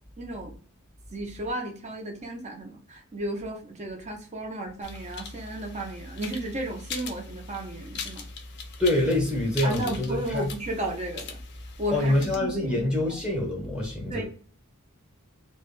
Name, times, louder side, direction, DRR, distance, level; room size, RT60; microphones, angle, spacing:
voice 1, 0.2-0.6 1.1-8.3 9.6-11.4 11.8-13.2 14.1-14.3, right 1 dB, 30° right, 0.6 m, -34 dB
sound 1, 4.8-12.4, left 4 dB, 50° left, 0.5 m, -40 dB
voice 2, 8.8-10.5 11.9-14.3, left 1 dB, 5° right, 0.8 m, -26 dB
2.2 x 2.1 x 3.1 m
head